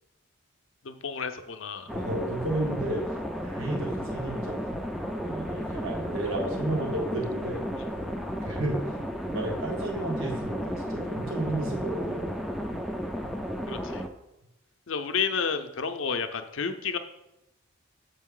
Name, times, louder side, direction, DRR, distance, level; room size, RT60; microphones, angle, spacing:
voice 1, 0.8-1.9 13.7-14.0 14.9-17.0, left 6 dB, 65° left, 8 dB, 0.6 m, -31 dB
voice 2, 1.8-3.0 3.4-4.6 5.2-7.6 8.4-8.9 9.3-12.3, right 1 dB, 70° right, -1 dB, 1.5 m, -32 dB
sound 1, 1.9-14.1, equal, ahead, 0.4 m, -33 dB
7.0 x 5.3 x 3.7 m, 0.90 s
head